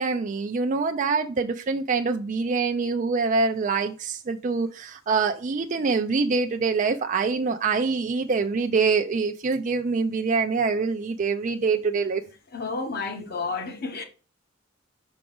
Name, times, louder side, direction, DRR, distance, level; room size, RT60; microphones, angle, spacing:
voice 1, 0.0-12.2, right 4 dB, 40° right, 0.4 m, -25 dB
voice 2, 12.5-14.0, left 4 dB, 50° left, 1.1 m, -31 dB
5.9 x 4.8 x 3.8 m
head